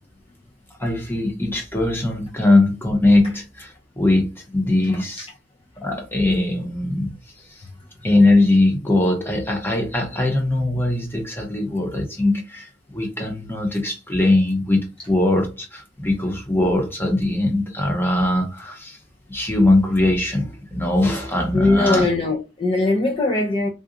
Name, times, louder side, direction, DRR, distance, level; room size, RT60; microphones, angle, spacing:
voice 1, 0.8-5.3 5.8-7.6 8.0-19.0 19.3-22.1, left 2 dB, 10° left, 0.9 m, -21 dB
voice 2, 21.5-23.7, left 2 dB, 30° left, 0.5 m, -20 dB
3.7 x 2.3 x 2.6 m
head